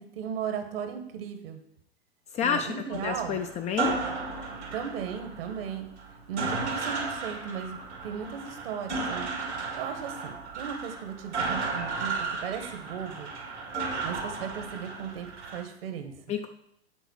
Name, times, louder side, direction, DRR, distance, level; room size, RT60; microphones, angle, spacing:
voice 1, 0.0-1.6 2.4-3.4 4.7-5.9 6.3-9.3 9.7-12.1 12.4-13.3 14.0-16.1, right 7 dB, 60° right, 7 dB, 1.4 m, -36 dB
voice 2, 2.3-4.0 16.3-16.5, left 7 dB, 20° left, 7 dB, 0.4 m, -30 dB
sound 1, 2.9-15.6, right 3 dB, 85° right, 2.5 m, -34 dB
8.1 x 3.9 x 6.4 m, 0.75 s
hypercardioid pair, 100°, 33 cm